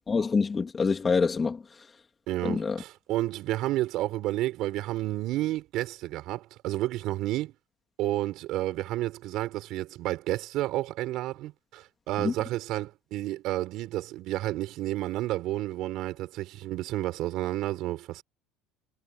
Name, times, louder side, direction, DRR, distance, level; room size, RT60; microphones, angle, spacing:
voice 1, 0.1-1.6 2.4-2.8 12.2-12.3, left 5 dB, 20° left, 2.7 m, -26 dB
voice 2, 2.3-7.5 8.0-18.2, right 16 dB, 55° right, 5.1 m, -31 dB
cardioid pair, 140°, 0 cm